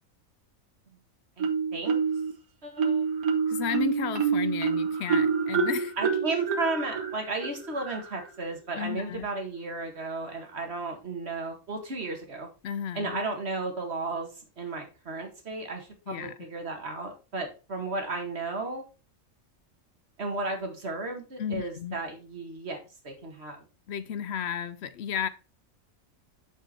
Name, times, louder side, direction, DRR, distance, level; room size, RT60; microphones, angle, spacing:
voice 1, 1.4-2.0 2.6-3.1 6.0-12.5 12.9-18.8 20.2-22.8 23.0-23.6, right 3 dB, 50° right, 2.0 m, -34 dB
Marimba xylophone, 1.4-2.3 2.8-8.3, right 6 dB, 85° right, 1.5 m, -27 dB
voice 2, 3.5-5.9 8.8-9.3 12.6-13.2 16.1-16.3 21.4-22.0 23.9-25.3, left 9 dB, 60° left, 0.8 m, -33 dB
7.0 x 5.6 x 4.2 m
omnidirectional pair, 1.4 m